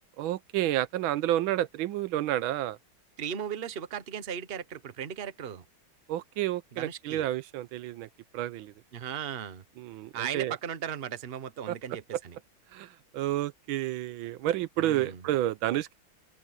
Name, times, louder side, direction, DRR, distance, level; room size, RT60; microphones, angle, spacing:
voice 1, 0.2-2.8 6.1-8.1 8.3-8.7 9.8-10.5 11.7-11.8 12.7-15.9, right 13 dB, 80° right, 1.4 m, -30 dB
voice 2, 3.2-5.6 6.7-7.2 8.9-9.6 10.1-12.3 14.8-15.2, right 8 dB, 35° right, 1.0 m, -37 dB
open air
omnidirectional pair, 2.2 m